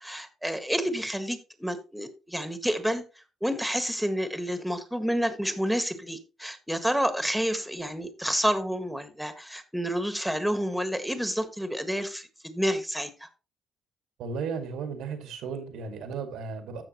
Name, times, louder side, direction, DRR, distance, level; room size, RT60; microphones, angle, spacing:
voice 1, 0.0-3.0 3.4-13.3, equal, ahead, 1.6 m, -29 dB
voice 2, 14.2-16.8, right 5 dB, 85° right, 2.1 m, -35 dB
14.5 x 6.2 x 3.0 m
cardioid pair, 90°, 0 cm